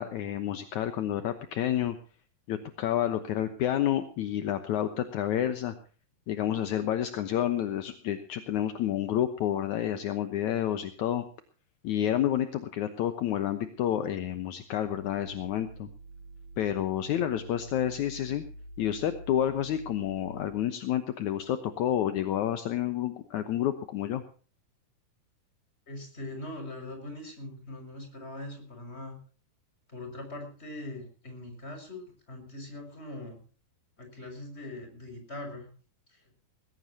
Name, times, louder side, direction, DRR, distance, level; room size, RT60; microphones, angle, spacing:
voice 1, 0.0-2.0 2.5-5.7 6.3-11.2 11.8-15.9 16.6-18.4 18.8-24.2, left 11 dB, 70° left, 9 dB, 2.0 m, -29 dB
sound 1, 14.9-20.5, equal, 55° right, 4.5 m, -46 dB
voice 2, 25.9-29.2 29.9-33.4 34.0-35.7 36.1-36.2, left 1 dB, 15° left, 5 dB, 6.1 m, -41 dB
20.5 x 17.5 x 2.9 m, 0.39 s
omnidirectional pair, 4.6 m